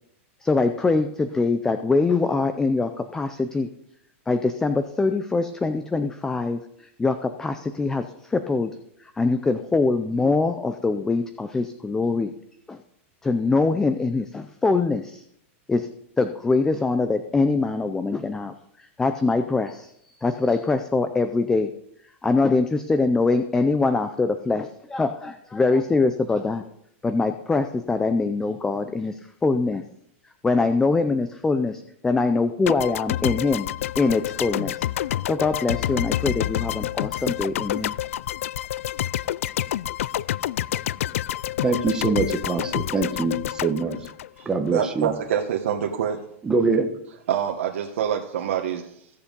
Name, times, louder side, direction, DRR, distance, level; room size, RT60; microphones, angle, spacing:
voice 1, 0.4-3.7 4.3-8.7 9.2-12.3 12.7-12.8 13.2-15.2 15.7-15.9 16.2-18.5 18.8-19.9 20.2-21.7 22.2-26.6 27.0-29.8 30.4-33.7 34.0-34.9 35.3-38.0, left 3 dB, 5° left, 9 dB, 0.5 m, -23 dB
sound 1, 32.7-44.9, left 12 dB, 85° left, 0.4 m, -28 dB
voice 2, 41.6-44.0 44.4-45.1 46.4-46.9, right 4 dB, 10° right, 4 dB, 1.2 m, -23 dB
voice 3, 44.4-46.2 47.3-49.1, right 9 dB, 80° right, 0 dB, 1.4 m, -26 dB
16.0 x 7.1 x 5.4 m, 0.74 s
supercardioid pair, 165°, 7 cm